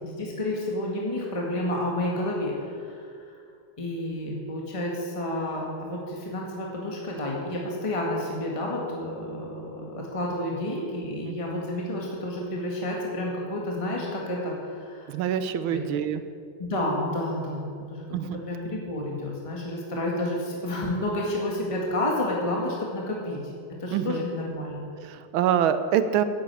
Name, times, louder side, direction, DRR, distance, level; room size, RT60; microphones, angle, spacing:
voice 1, 0.0-3.1 3.8-15.2 15.7-15.8 16.6-18.0 18.4-23.4 23.8-24.9, left 1 dB, 15° left, -2 dB, 1.8 m, -30 dB
voice 2, 15.1-16.2 18.1-18.4 23.9-24.2 25.0-26.2, right 9 dB, 80° right, 11 dB, 1.5 m, -25 dB
10.5 x 9.2 x 8.3 m, 2.2 s
omnidirectional pair, 2.3 m